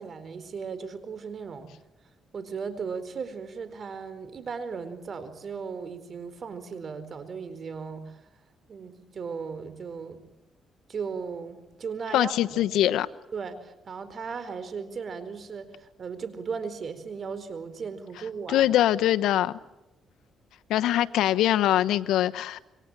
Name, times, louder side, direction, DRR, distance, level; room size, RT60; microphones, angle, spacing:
voice 1, 0.0-1.7 2.3-8.3 8.7-10.2 10.9-12.6 13.3-18.7, right 5 dB, 50° right, 12 dB, 4.4 m, -36 dB
voice 2, 12.1-13.1 18.5-19.6 20.7-22.6, left 12 dB, 85° left, 12 dB, 1.0 m, -23 dB
27.0 x 24.0 x 8.9 m, 0.92 s
cardioid pair, 90°, 0 cm